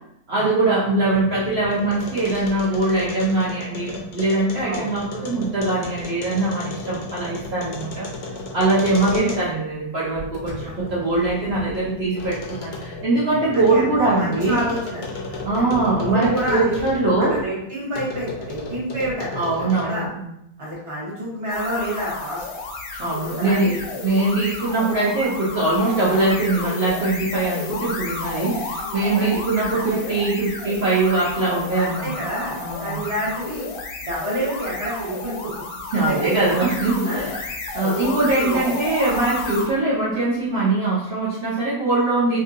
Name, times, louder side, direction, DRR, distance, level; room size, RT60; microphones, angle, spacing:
voice 1, 0.3-8.1 8.5-14.6 15.4-17.4 19.3-20.1 23.0-23.8 24.0-32.1 32.6-33.0 35.9-37.3 37.7-42.4, right 2 dB, 75° right, -9 dB, 0.5 m, -22 dB
sound 1, 0.7-9.7 10.2-17.5 17.9-20.0, left 3 dB, 65° left, 0.9 m, -34 dB
voice 2, 13.5-15.7 16.0-16.8 17.3-20.1 20.6-22.4 23.2-24.0 28.8-29.4 29.7-30.2 31.7-33.7 34.0-35.5 36.1-36.6 37.0-37.3 37.8-38.8, right 1 dB, 25° right, -6 dB, 0.7 m, -29 dB
sound 2, 21.5-39.8, left 3 dB, 80° left, 1.4 m, -32 dB
3.4 x 2.7 x 2.5 m, 0.79 s
omnidirectional pair, 2.2 m